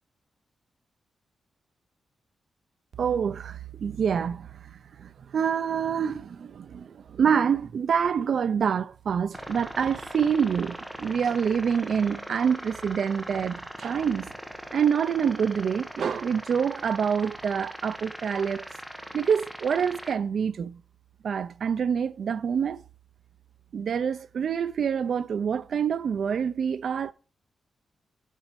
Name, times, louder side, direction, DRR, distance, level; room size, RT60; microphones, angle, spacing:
voice 1, 3.0-14.3 14.7-18.7 19.1-20.8 21.2-22.8 23.7-27.1, right 7 dB, 55° right, 0.4 m, -26 dB
sound 1, 9.3-20.1, equal, 5° right, 1.0 m, -40 dB
7.5 x 6.2 x 4.5 m
wide cardioid pair, 175°, 0 cm